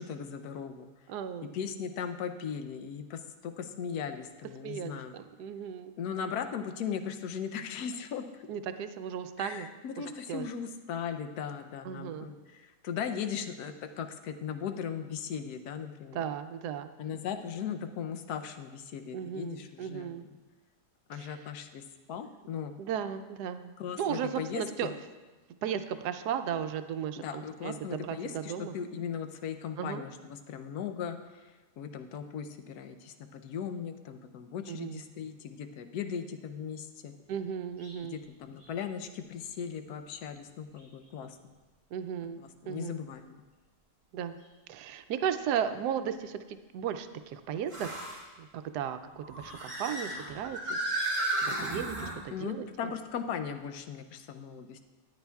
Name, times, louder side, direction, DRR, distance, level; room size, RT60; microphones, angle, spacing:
voice 1, 0.0-0.9 1.5-5.2 6.0-8.5 9.4-16.2 17.0-20.2 21.1-21.8 22.1-22.7 23.8-24.9 27.2-37.1 38.1-41.5 42.4-43.4 52.3-54.8, left 7 dB, 75° left, 7 dB, 1.2 m, -38 dB
voice 2, 1.1-1.5 4.6-5.9 8.5-9.7 10.3-10.4 11.9-12.3 16.1-16.9 19.1-20.2 21.1-21.3 22.8-23.7 24.0-24.9 25.6-28.7 29.8-30.0 34.7-35.0 37.3-38.2 41.9-42.4 42.7-43.0 44.1-44.4 44.7-47.9 48.4-50.8 51.4-52.7, right 8 dB, 80° right, 10 dB, 1.1 m, -35 dB
sound 1, 37.8-38.0 38.6-38.7 40.8-40.9 44.4-44.5 47.7-48.2 49.2-52.1, right 1 dB, 25° right, 2.5 m, -34 dB
14.0 x 9.4 x 2.3 m, 1.2 s
omnidirectional pair, 1.7 m